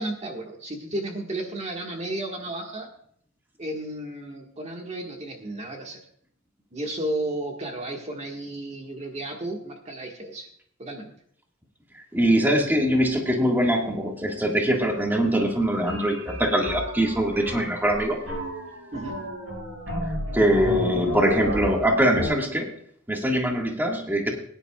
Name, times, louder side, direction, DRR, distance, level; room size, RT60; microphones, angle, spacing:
voice 1, 0.0-2.9 3.6-6.0 6.7-10.5 10.8-11.1 18.9-19.2, right 1 dB, 35° right, 1 dB, 1.6 m, -33 dB
voice 2, 11.9-18.2 20.3-22.7 23.1-24.4, equal, 10° right, 1 dB, 1.7 m, -23 dB
sound 1, 15.9-22.3, equal, 80° right, 5.7 m, -32 dB
20.5 x 10.5 x 2.3 m, 0.63 s
head